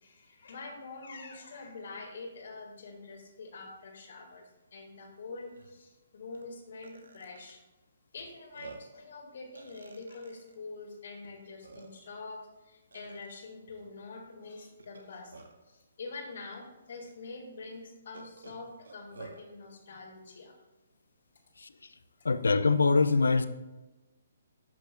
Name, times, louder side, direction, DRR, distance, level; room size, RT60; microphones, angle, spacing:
voice 1, 0.0-4.4 4.7-7.6 8.1-20.5, left 3 dB, 65° left, 1.7 m, -45 dB
Burping eructation, 5.0-5.1 5.5-5.7 6.3-6.5 6.8-7.5 8.1-8.2 8.5-9.0 9.5-10.5 11.2-11.3 11.6-12.2 12.9-13.3 14.8-15.7 16.5-16.6 17.0-17.1 18.1-19.4, right 4 dB, 85° right, 1.0 m, -50 dB
voice 2, 22.2-23.5, left 4 dB, 85° left, 0.5 m, -24 dB
10.5 x 6.2 x 2.3 m
hypercardioid pair, 140°, 0 cm